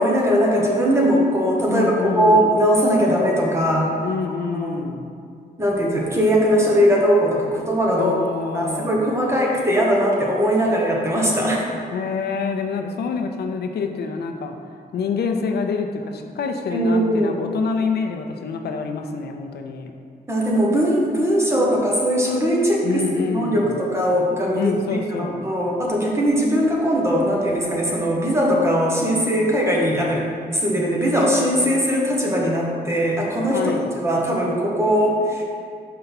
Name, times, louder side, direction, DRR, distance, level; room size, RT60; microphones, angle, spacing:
voice 1, 0.0-3.9 4.6-4.8 5.6-8.2 8.5-11.6 16.7-17.4 20.3-23.0 23.3-30.2 30.5-33.6 34.0-35.5, equal, 15° right, -3 dB, 1.2 m, -20 dB
voice 2, 1.7-2.4 4.0-5.1 7.9-9.0 11.9-14.5 14.9-19.9 22.8-23.8 24.5-25.5 33.5-33.9, left 5 dB, 85° left, 4 dB, 0.5 m, -26 dB
5.6 x 5.4 x 4.0 m, 2.2 s
wide cardioid pair, 120°, 16 cm